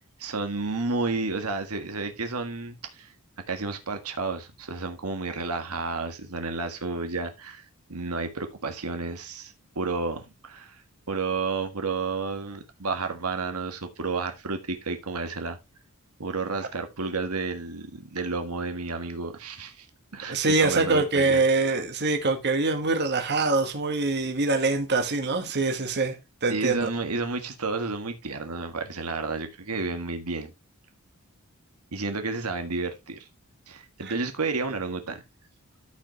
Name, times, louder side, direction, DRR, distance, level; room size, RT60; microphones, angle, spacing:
voice 1, 0.2-3.1 3.5-7.6 7.9-10.8 11.1-15.6 16.2-19.9 20.1-21.4 26.5-30.5 31.9-33.3 33.7-35.2, right 3 dB, 85° right, 1.7 m, -31 dB
voice 2, 20.3-26.2 26.4-26.9 34.0-34.1, right 3 dB, 50° right, 1.7 m, -24 dB
13.5 x 5.4 x 3.2 m
head